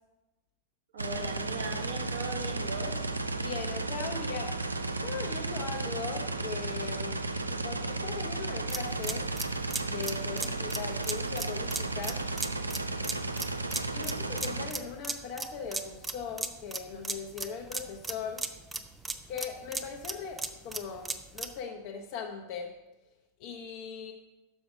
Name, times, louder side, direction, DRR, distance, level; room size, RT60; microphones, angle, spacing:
voice 1, 0.9-3.0, right 2 dB, 60° right, 1 dB, 1.7 m, -39 dB
sound 1, 1.0-14.7, right 2 dB, 80° right, 0.4 m, -34 dB
voice 2, 3.4-4.5 5.0-9.3 9.8-12.2 13.9-18.4 19.3-22.7 23.4-24.1, left 6 dB, 45° left, 1 dB, 0.7 m, -39 dB
sound 2, 8.7-21.6, right 3 dB, 10° right, 0.5 m, -37 dB
6.3 x 6.0 x 5.0 m, 1.0 s
figure-of-eight pair, 90°, 0 cm